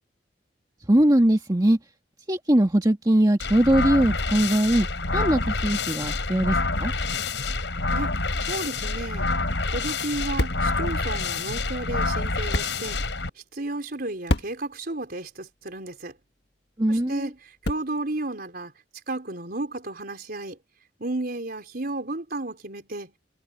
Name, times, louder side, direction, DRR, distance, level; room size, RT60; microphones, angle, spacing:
voice 1, 0.9-1.8 2.3-4.9 5.1-6.9 16.8-17.3, right 1 dB, 20° right, 1.6 m, -21 dB
sound 1, 3.4-13.3, left 3 dB, 80° left, 5.2 m, -27 dB
voice 2, 8.5-9.3 9.7-13.0 13.5-16.1 16.9-17.4 17.6-18.7 19.1-20.6 21.0-23.1, right 2 dB, 55° right, 4.2 m, -33 dB
sound 2, 9.1-18.2, left 1 dB, 65° left, 1.7 m, -35 dB
head